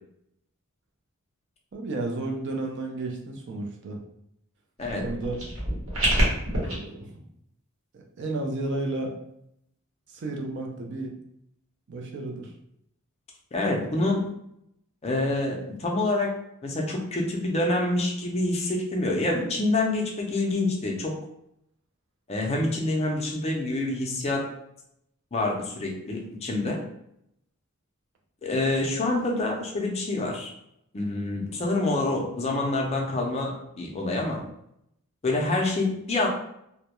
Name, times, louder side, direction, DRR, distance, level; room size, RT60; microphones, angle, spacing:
voice 1, 1.7-4.0 5.0-5.4 6.6-7.2 7.9-9.2 10.1-11.2 11.9-12.5, right 2 dB, 55° right, 1 dB, 0.4 m, -32 dB
sound 1, 4.8-6.7, right 1 dB, 75° right, 0.9 m, -26 dB
voice 2, 13.5-14.3 15.0-16.3 16.6-21.1 22.3-24.5 25.3-26.8 28.4-30.5 30.9-34.4 35.2-36.3, left 2 dB, 30° left, 0 dB, 0.4 m, -27 dB
2.2 x 2.0 x 2.9 m, 0.76 s
head